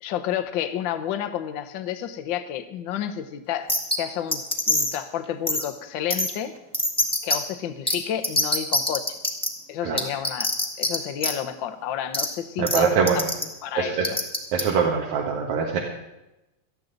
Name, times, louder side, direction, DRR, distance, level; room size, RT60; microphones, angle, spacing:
voice 1, 0.0-4.4 4.7-6.5 7.2-9.2 9.7-10.5 10.8-13.0 13.6-14.2, left 10 dB, 75° left, 9 dB, 1.1 m, -30 dB
sound 1, 3.7-4.0 4.3-5.0 5.5-5.6 6.1-6.3 6.7-7.4 7.9-8.0 8.2-9.5 10.0-10.9 11.2-11.3 12.1-12.2 12.7-12.8 13.1-13.4 14.0-14.6, left 1 dB, 5° left, 0.9 m, -23 dB
voice 2, 12.6-13.3 13.7-14.1 14.5-15.8, right 6 dB, 75° right, 0 dB, 2.7 m, -23 dB
18.5 x 13.0 x 3.9 m, 0.97 s
omnidirectional pair, 3.3 m